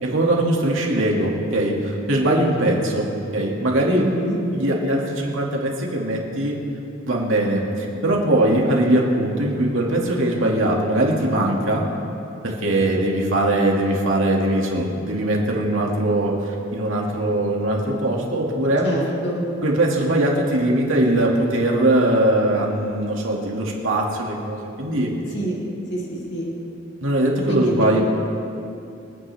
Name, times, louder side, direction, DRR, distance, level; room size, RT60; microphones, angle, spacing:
voice 1, 0.0-4.1 4.5-6.6 7.1-11.8 12.4-18.9 19.6-25.1 27.0-28.0, right 1 dB, 75° right, -1 dB, 2.3 m, -21 dB
voice 2, 3.9-4.4 18.8-19.4 25.3-25.6 25.9-26.5 27.5-28.0, right 1 dB, 55° left, -4 dB, 2.8 m, -26 dB
26.5 x 9.4 x 3.5 m, 2.7 s
head